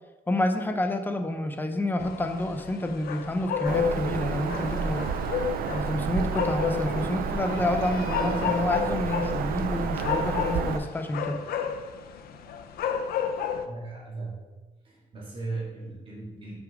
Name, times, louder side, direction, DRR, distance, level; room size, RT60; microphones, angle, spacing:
voice 1, 0.3-5.1 5.7-11.4, left 1 dB, 15° left, 6 dB, 0.6 m, -29 dB
sound 1, 2.0-13.7, left 7 dB, 80° left, 0.6 m, -32 dB
Bird vocalization bird call bird song, 3.6-10.8, right 6 dB, 75° right, 0.5 m, -30 dB
voice 2, 13.4-14.4 14.8-16.5, right 3 dB, 35° right, -5 dB, 2.2 m, -37 dB
6.1 x 5.0 x 4.9 m, 1.2 s
cardioid pair, 145°, 15 cm